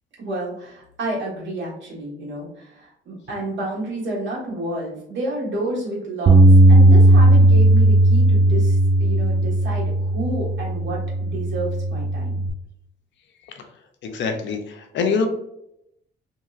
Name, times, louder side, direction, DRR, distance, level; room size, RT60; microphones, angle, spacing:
voice 1, 0.2-6.4 6.7-12.4, right 1 dB, 65° right, -5 dB, 1.5 m, -30 dB
Bass guitar, 6.3-12.5, right 1 dB, 40° right, 0.4 m, -15 dB
voice 2, 14.0-15.3, left 5 dB, 70° left, 5 dB, 0.6 m, -24 dB
2.9 x 2.8 x 2.4 m, 0.77 s
cardioid pair, 90°, 20 cm